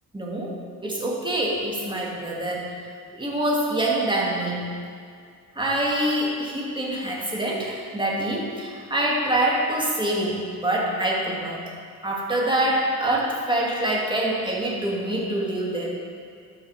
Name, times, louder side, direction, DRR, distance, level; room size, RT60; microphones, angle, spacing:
voice 1, 0.1-0.5 0.8-2.8 3.1-4.7 5.6-11.7 12.0-16.0, right 1 dB, 10° right, -4 dB, 2.2 m, -25 dB
12.0 x 5.6 x 4.8 m, 2.3 s
cardioid pair, 80°, 40 cm